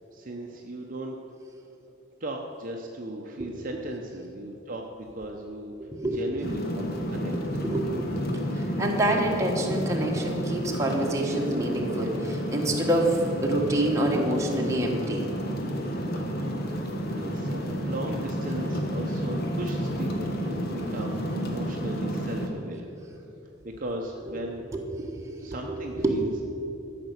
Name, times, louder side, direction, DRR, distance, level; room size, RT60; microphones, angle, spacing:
voice 1, 0.1-1.3 2.2-4.9 5.1-5.7 6.1-7.4 17.1-22.9 23.8-24.6 25.4-26.4, right 1 dB, 40° right, 1 dB, 0.8 m, -37 dB
sound 1, 6.4-22.5, equal, 50° left, 1.3 m, -31 dB
voice 2, 7.6-8.1 8.5-15.3 24.3-24.4 24.7-24.8 25.1-25.3 25.7-26.4, right 1 dB, 15° right, -1 dB, 1.4 m, -27 dB
13.5 x 6.0 x 8.1 m, 2.9 s
head